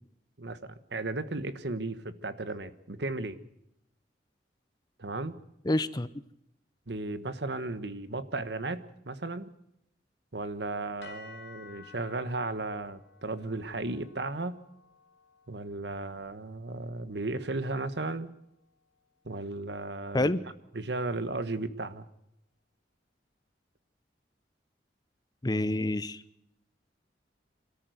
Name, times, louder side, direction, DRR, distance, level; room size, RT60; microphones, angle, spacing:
voice 1, 0.4-3.4 5.0-5.3 6.9-9.5 10.3-14.6 15.5-18.3 19.2-20.3 20.7-22.1, right 2 dB, 65° right, 12 dB, 1.3 m, -35 dB
voice 2, 5.6-6.1 20.1-20.4 25.4-26.2, left 1 dB, 20° left, 15 dB, 0.7 m, -27 dB
sound 1, 11.0-19.3, left 5 dB, 65° left, 2.4 m, -55 dB
25.5 x 13.5 x 8.0 m, 0.81 s
head